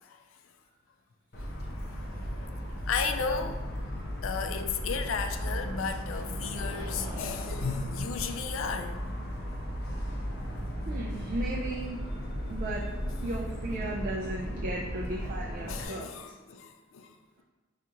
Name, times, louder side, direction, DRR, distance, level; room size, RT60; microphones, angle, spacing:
Motor vehicle (road) / Siren, 1.3-15.9, equal, 50° left, 0.7 m, -35 dB
sound 1, 2.5-10.9, equal, 10° right, 1.2 m, -50 dB
voice 1, 2.9-3.6 4.2-9.0 13.2-13.3 15.6-17.4, left 5 dB, 80° left, 6 dB, 0.4 m, -34 dB
voice 2, 10.9-12.0 12.5-12.8 13.2-16.1, right 1 dB, 45° right, -3 dB, 0.4 m, -35 dB
4.8 x 2.4 x 2.8 m, 1.2 s
head